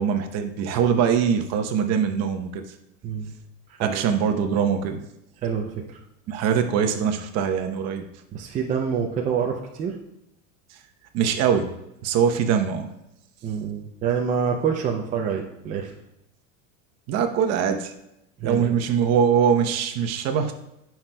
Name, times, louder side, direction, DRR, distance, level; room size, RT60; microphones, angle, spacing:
voice 1, 0.0-2.6 3.8-5.0 6.3-8.0 11.1-11.7 12.0-12.9 17.1-17.9 18.4-20.5, right 7 dB, 40° right, 6 dB, 0.9 m, -22 dB
voice 2, 3.7-4.0 5.4-6.0 8.3-10.0 13.4-15.9 18.4-18.7, right 6 dB, 20° right, 0 dB, 0.4 m, -27 dB
17.0 x 5.9 x 2.2 m, 0.87 s
supercardioid pair, 155°, 41 cm